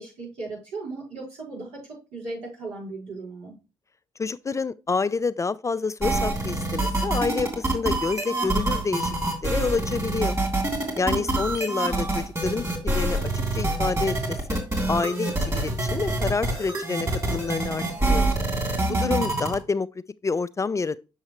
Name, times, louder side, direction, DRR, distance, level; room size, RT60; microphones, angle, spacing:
voice 1, 0.0-3.5 11.0-11.4 18.9-19.2, right 4 dB, 75° right, 4.5 m, -37 dB
voice 2, 4.2-9.1 9.4-10.4 11.0-14.6 14.9-18.3 19.0-19.9 20.2-21.0, left 4 dB, 25° left, 0.4 m, -28 dB
sound 1, 6.0-19.5, right 2 dB, 25° right, 2.9 m, -26 dB
7.3 x 5.5 x 3.0 m
hypercardioid pair, 50°, 11 cm